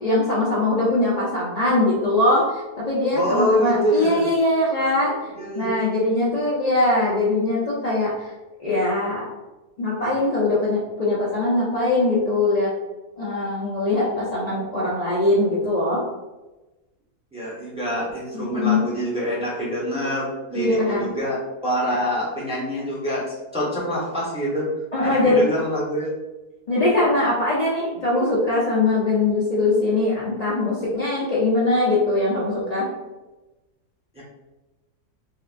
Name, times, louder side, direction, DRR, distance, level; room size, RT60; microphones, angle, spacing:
voice 1, 0.0-5.1 5.6-8.1 8.6-9.2 9.8-12.7 13.2-16.0 18.3-18.8 20.5-21.1 24.9-25.4 26.7-32.9, left 2 dB, 90° left, -7 dB, 0.3 m, -21 dB
voice 2, 3.1-4.2 5.3-5.7 17.3-21.4 21.6-24.7 25.0-26.1 34.1-34.2, equal, 5° right, -6 dB, 0.5 m, -25 dB
4.1 x 2.5 x 2.4 m, 1.1 s
omnidirectional pair, 1.7 m